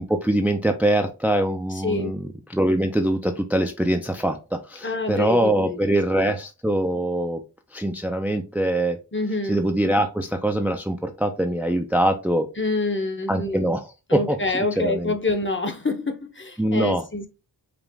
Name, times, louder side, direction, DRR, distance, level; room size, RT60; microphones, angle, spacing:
voice 1, 0.0-7.4 7.7-9.0 9.5-12.5 13.3-13.8 14.1-15.1 16.6-17.0, right 1 dB, 5° right, 0.5 m, -23 dB
voice 2, 1.7-2.2 4.8-6.3 9.1-9.6 12.6-13.7 14.1-17.3, left 2 dB, 30° left, 0.9 m, -27 dB
5.1 x 2.4 x 3.5 m
wide cardioid pair, 60°, 41 cm